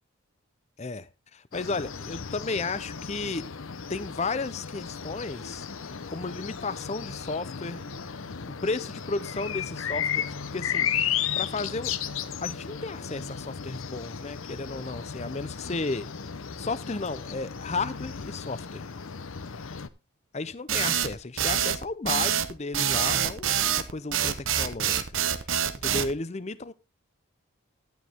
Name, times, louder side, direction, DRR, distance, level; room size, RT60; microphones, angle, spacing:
voice 1, 0.8-3.5 3.9-8.2 8.6-11.9 12.4-16.1 16.6-18.9 19.6-19.7 20.3-25.0 25.8-26.7, left 3 dB, 30° left, 0.6 m, -34 dB
sound 1, 1.5-19.9, left 8 dB, 70° left, 0.7 m, -34 dB
sound 2, 5.8-13.9, right 1 dB, 50° left, 2.4 m, -50 dB
sound 3, 20.7-26.1, right 9 dB, 65° right, 1.0 m, -26 dB
12.0 x 9.3 x 3.5 m
head